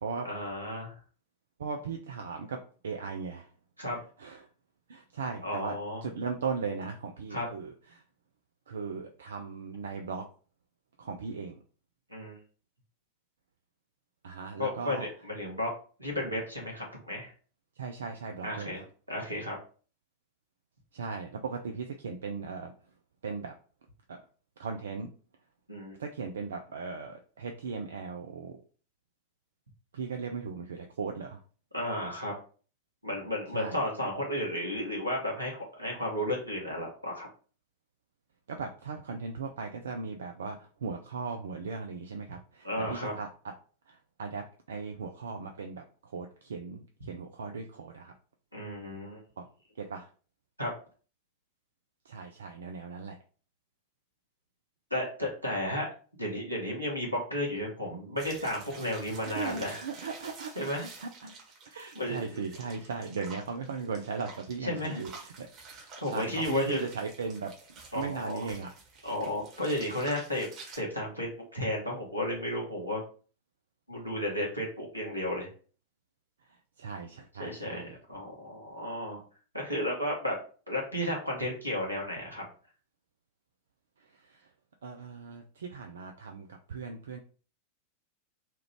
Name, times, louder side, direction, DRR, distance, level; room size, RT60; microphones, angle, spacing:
voice 1, 0.2-0.9 3.8-4.0 5.4-6.0 7.3-7.5 12.1-12.4 14.5-15.7 16.0-17.3 18.4-19.6 25.7-26.0 31.7-32.3 33.0-37.3 42.6-43.1 48.5-49.2 50.6-50.7 54.9-55.9 56.2-59.8 60.5-60.9 61.9-62.4 64.6-65.0 66.0-66.9 67.9-68.5 69.0-70.5 70.8-73.0 73.9-75.5 77.4-77.8 78.1-79.2 79.5-80.4 80.7-82.4, left 1 dB, 85° right, -1 dB, 1.2 m, -33 dB
voice 2, 1.6-2.6 2.8-3.5 4.2-4.4 4.9-5.8 6.0-8.0 8.7-10.2 11.0-11.6 14.2-15.1 17.8-18.7 20.9-22.7 23.2-23.5 24.1-24.2 24.6-25.1 26.0-28.6 29.9-31.4 33.5-33.8 38.5-43.5 43.9-45.8 46.1-48.1 49.4-49.5 49.8-50.1 52.1-53.2 59.3-60.7 61.0-61.3 61.7-65.5 66.1-67.5 67.9-68.7 76.8-78.0 84.3-84.4 84.8-87.2, right 5 dB, 65° right, 4 dB, 0.4 m, -37 dB
sound 1, 58.2-70.8, right 4 dB, 35° right, 1.2 m, -49 dB
2.9 x 2.4 x 3.3 m, 0.39 s
figure-of-eight pair, 90°, 0 cm